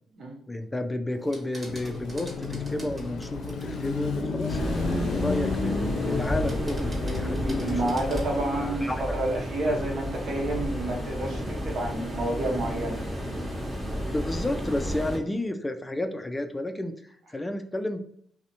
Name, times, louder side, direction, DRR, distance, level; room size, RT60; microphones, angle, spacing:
voice 1, 0.5-7.8 8.5-9.0 14.1-18.0, left 1 dB, 20° left, 8 dB, 0.3 m, -32 dB
sound 1, 1.1-3.7 4.1-4.7 5.6-6.1 6.4-8.4, right 1 dB, 40° right, 1.3 m, -48 dB
Car passing by / Traffic noise roadway noise / Engine, 1.7-9.0, left 3 dB, 75° left, 0.5 m, -32 dB
sound 2, 4.5-15.2, equal, 20° right, 1.1 m, -32 dB
voice 2, 7.4-13.1, right 1 dB, 70° right, 0 dB, 0.7 m, -30 dB
2.8 x 2.0 x 2.5 m, 0.63 s
cardioid pair, 70°, 0 cm